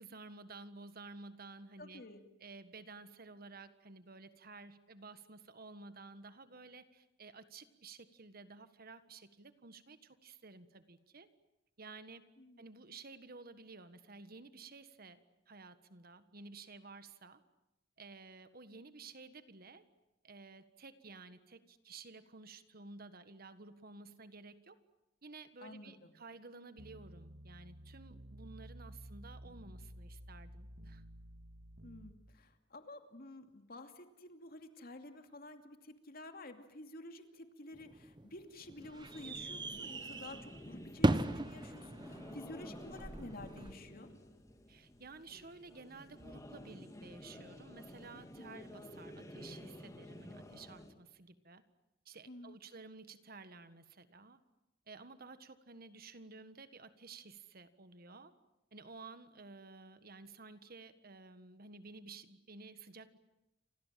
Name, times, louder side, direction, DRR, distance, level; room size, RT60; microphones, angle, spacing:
voice 1, 0.0-2.0 2.4-11.3 11.8-12.2 12.6-17.4 18.0-19.8 20.2-24.8 25.2-31.0 44.7-51.6 52.0-54.4 54.9-58.3 58.7-63.2, right 3 dB, 55° right, 11 dB, 1.6 m, -53 dB
voice 2, 1.8-2.2 12.4-12.6 25.6-26.1 31.8-44.1 48.4-48.6 52.3-52.6, left 2 dB, 50° left, 6 dB, 2.6 m, -51 dB
sound 1, 26.8-32.1, equal, 75° right, 2.4 m, -52 dB
sound 2, 37.7-43.7, right 1 dB, 25° right, 1.0 m, -38 dB
sound 3, 38.9-50.9, left 1 dB, 15° left, 2.3 m, -52 dB
29.5 x 26.0 x 7.6 m, 0.94 s
head